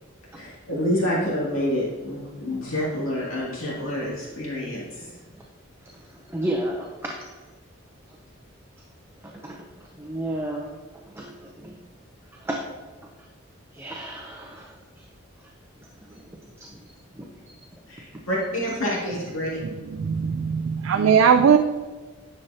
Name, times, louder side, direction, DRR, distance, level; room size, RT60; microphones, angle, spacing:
voice 1, 0.3-5.1 17.9-19.6, equal, 75° left, -6 dB, 2.5 m, -28 dB
voice 2, 6.1-7.1 9.2-9.7 10.0-10.8 11.1-11.8 12.4-12.6 13.7-14.8 16.1-16.2 16.6-16.8 17.2-17.3, right 1 dB, 10° right, -1 dB, 0.6 m, -32 dB
voice 3, 20.0-21.6, right 7 dB, 75° right, 7 dB, 0.4 m, -19 dB
9.8 x 6.8 x 2.8 m, 1.3 s
head